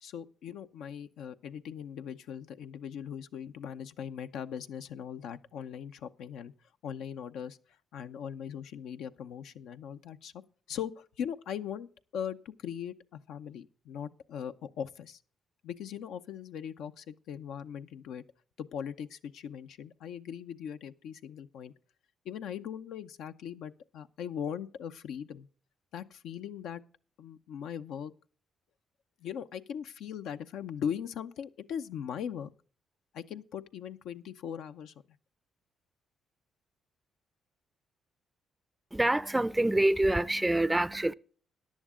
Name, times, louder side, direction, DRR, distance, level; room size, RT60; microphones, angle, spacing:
voice 1, 0.0-6.5 6.8-7.6 7.9-10.3 10.7-11.9 12.1-15.2 15.6-18.2 18.6-21.7 22.2-25.5 25.9-26.8 27.2-28.1 29.2-32.5 33.1-34.9, left 8 dB, 80° left, 0.7 m, -39 dB
voice 2, 38.9-41.1, right 1 dB, 10° right, 0.4 m, -26 dB
14.5 x 10.5 x 3.7 m
cardioid pair, 90°, 0 cm